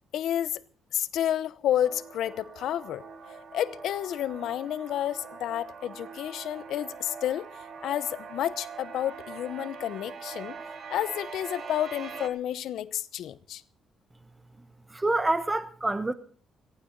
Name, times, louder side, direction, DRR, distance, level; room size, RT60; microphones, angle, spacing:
voice 1, 0.1-0.6 0.9-3.0 3.5-7.5 7.8-10.5 10.9-13.6, left 11 dB, 75° left, 0.8 m, -30 dB
sound 1, 1.7-12.3, right 5 dB, 50° right, 2.2 m, -43 dB
voice 2, 14.9-16.1, right 2 dB, 15° right, 1.2 m, -26 dB
19.0 x 15.0 x 3.9 m
cardioid pair, 90°, 0 cm